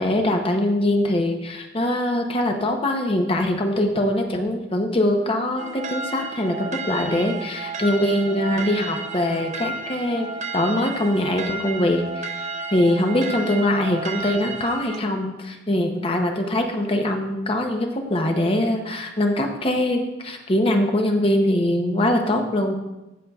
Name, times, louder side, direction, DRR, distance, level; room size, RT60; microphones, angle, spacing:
voice 1, 0.0-10.3 10.5-22.7, left 1 dB, 30° left, 3 dB, 0.7 m, -22 dB
sound 1, 5.6-15.0, right 3 dB, 35° right, 0.4 m, -32 dB
15.0 x 5.5 x 2.3 m, 1.0 s
head